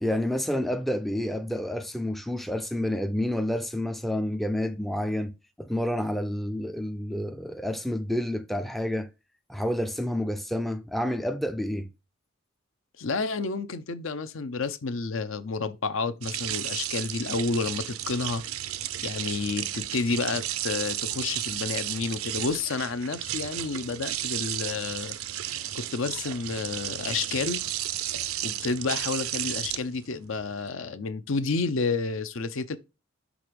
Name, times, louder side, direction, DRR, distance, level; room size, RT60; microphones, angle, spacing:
voice 1, 0.0-5.3 5.6-9.1 9.5-11.9, left 1 dB, ahead, 0.3 m, -29 dB
voice 2, 13.0-18.4 19.0-25.2 25.7-27.6 28.4-32.8, left 4 dB, 75° left, 0.6 m, -30 dB
sound 1, 16.2-30.7, right 12 dB, 90° right, 0.5 m, -33 dB
6.3 x 3.5 x 5.1 m
head